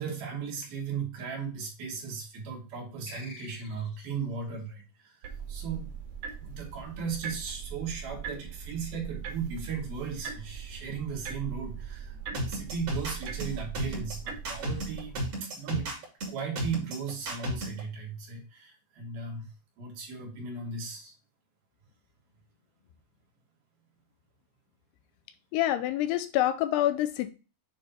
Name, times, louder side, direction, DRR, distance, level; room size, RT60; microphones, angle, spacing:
voice 1, 0.0-5.9 6.4-15.9 16.3-19.5 19.8-21.1, right 5 dB, 65° right, -1 dB, 3.7 m, -37 dB
sound 1, 3.1-4.2, left 4 dB, 60° left, 2.4 m, -48 dB
sound 2, 5.2-15.2, right 6 dB, 85° right, 1.4 m, -40 dB
sound 3, 12.3-17.8, right 1 dB, 40° right, 3.0 m, -33 dB
voice 2, 25.5-27.3, left 13 dB, 85° left, 11 dB, 2.6 m, -26 dB
8.7 x 3.3 x 3.8 m, 0.32 s
omnidirectional pair, 4.8 m